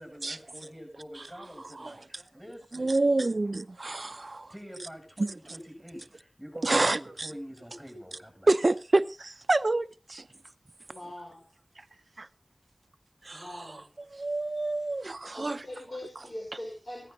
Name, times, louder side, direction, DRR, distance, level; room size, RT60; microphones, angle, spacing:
voice 1, 0.0-2.9 4.1-8.5, equal, 5° right, 8.0 m, -46 dB
voice 2, 1.6-2.2 2.7-4.5 5.2-5.6 6.6-7.3 8.5-10.3 11.8-11.9 12.2-12.3 13.2-13.8 14.1-15.6, right 2 dB, 65° right, 0.6 m, -28 dB
voice 3, 10.9-11.4 13.3-13.9 15.4-17.1, left 1 dB, 60° left, 5.6 m, -42 dB
16.5 x 14.5 x 4.0 m
wide cardioid pair, 40°, 0 cm